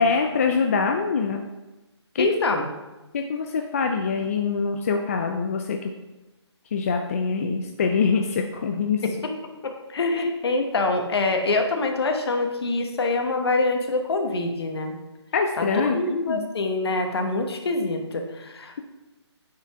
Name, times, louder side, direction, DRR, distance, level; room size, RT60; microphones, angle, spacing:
voice 1, 0.0-1.4 2.1-2.3 3.1-5.8 6.7-9.0 15.3-16.5, left 5 dB, 30° left, 4 dB, 0.4 m, -24 dB
voice 2, 2.2-2.7 9.0-9.1 9.6-14.9 15.6-18.8, left 3 dB, 60° left, 4 dB, 1.1 m, -25 dB
9.1 x 4.7 x 3.6 m, 1.1 s
hypercardioid pair, 160°, 15 cm